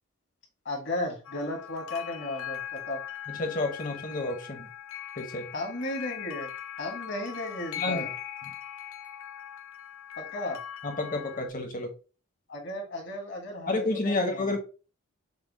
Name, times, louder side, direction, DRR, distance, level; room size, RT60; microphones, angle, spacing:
voice 1, 0.6-3.0 5.5-6.5 6.8-8.1 10.2-10.6 12.5-14.6, left 1 dB, 55° left, 1 dB, 1.6 m, -34 dB
sound 1, 1.2-11.5, left 11 dB, 80° left, 0.6 m, -40 dB
voice 2, 3.3-4.7 5.2-5.5 7.8-8.1 8.4-8.5 10.8-11.9 13.6-14.6, left 2 dB, 40° left, 4 dB, 1.0 m, -30 dB
6.0 x 2.3 x 3.4 m, 0.33 s
head